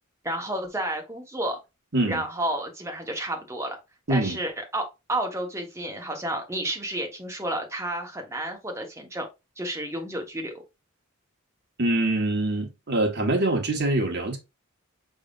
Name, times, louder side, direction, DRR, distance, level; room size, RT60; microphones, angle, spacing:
voice 1, 0.2-1.6 2.1-3.8 4.1-4.8 5.1-9.3 9.6-10.6, right 1 dB, 15° right, 1.3 m, -31 dB
voice 2, 11.8-14.4, right 2 dB, 50° right, 1.5 m, -24 dB
5.7 x 3.6 x 2.5 m
head